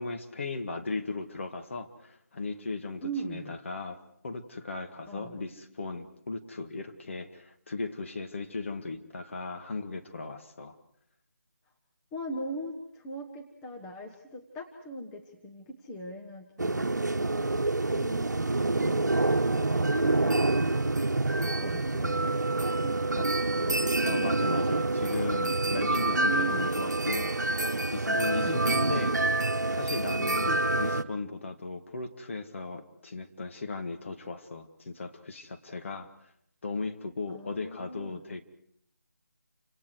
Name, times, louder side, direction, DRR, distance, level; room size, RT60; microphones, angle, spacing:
voice 1, 0.0-4.0 4.2-10.8 17.5-17.6 23.2-23.3 23.8-27.5 27.9-29.2 29.7-36.3 36.6-38.4, left 3 dB, 45° left, 5 dB, 2.0 m, -37 dB
voice 2, 3.0-3.6 5.1-5.4 12.1-17.3 17.9-22.4 22.8-23.1 23.6-24.3 25.8-26.7 28.3-28.6 30.4-30.6 37.3-38.2, right 1 dB, 10° left, 1 dB, 1.2 m, -40 dB
sound 1, 16.6-31.0, right 2 dB, 75° right, 1.1 m, -27 dB
29.0 x 26.5 x 4.8 m, 0.70 s
figure-of-eight pair, 160°, 9 cm